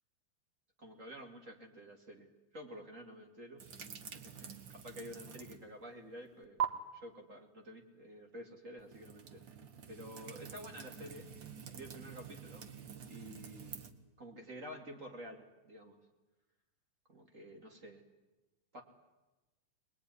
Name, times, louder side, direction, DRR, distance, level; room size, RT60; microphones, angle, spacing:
voice 1, 0.8-3.6 4.1-9.4 9.9-11.3 11.7-12.7 13.1-13.8 14.2-16.0 17.1-18.0 18.7-18.8, equal, 25° right, 3 dB, 2.1 m, -50 dB
sound 1, 3.6-5.7 6.0-6.6 8.8-13.9, right 8 dB, 85° right, 1.0 m, -45 dB
24.5 x 20.5 x 9.9 m, 1.1 s
omnidirectional pair, 4.5 m